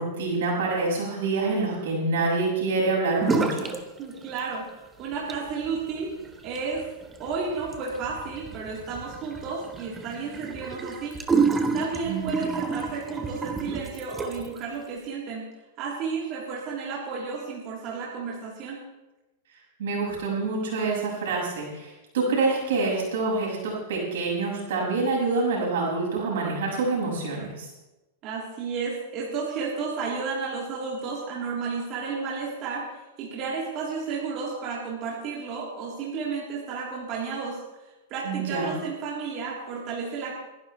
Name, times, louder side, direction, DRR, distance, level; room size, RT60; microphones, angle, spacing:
voice 1, 0.0-3.7 12.0-12.5 19.8-27.7 38.2-38.8, right 3 dB, 75° right, -3 dB, 6.4 m, -26 dB
sound 1, 3.2-3.8 4.1-4.7 5.1-14.6, right 4 dB, 15° right, 1.3 m, -30 dB
voice 2, 4.0-6.1 6.4-6.9 7.2-11.2 11.7-15.5 15.8-18.8 28.2-32.9 33.2-37.6 38.1-40.4, right 5 dB, 40° right, -5 dB, 3.6 m, -32 dB
23.0 x 11.5 x 3.3 m, 1.0 s
hypercardioid pair, 130°, 0 cm